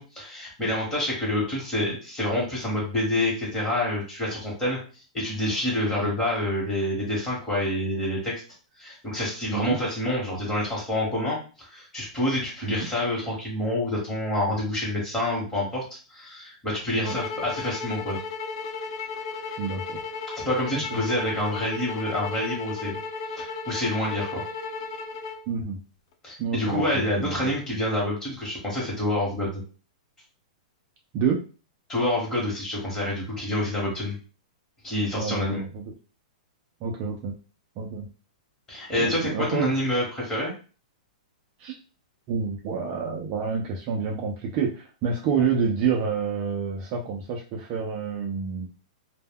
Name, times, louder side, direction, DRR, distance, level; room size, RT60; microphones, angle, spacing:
voice 1, 0.0-4.8 5.1-8.4 8.8-15.8 16.1-18.2 20.4-23.0 23.3-24.4 26.2-29.6 31.9-34.1 34.8-35.6 38.7-40.5, left 1 dB, 15° left, -4 dB, 1.0 m, -27 dB
sound 1, 17.0-25.4, left 4 dB, 45° left, 0.3 m, -34 dB
voice 2, 19.6-20.0 20.7-21.0 25.5-25.8 26.4-27.5 31.1-31.4 35.2-35.8 36.8-37.3 37.8-38.1 39.0-39.7 41.6-41.7 42.3-48.7, right 6 dB, 30° right, 0 dB, 0.3 m, -28 dB
2.1 x 2.1 x 3.5 m, 0.36 s
hypercardioid pair, 160°, 4 cm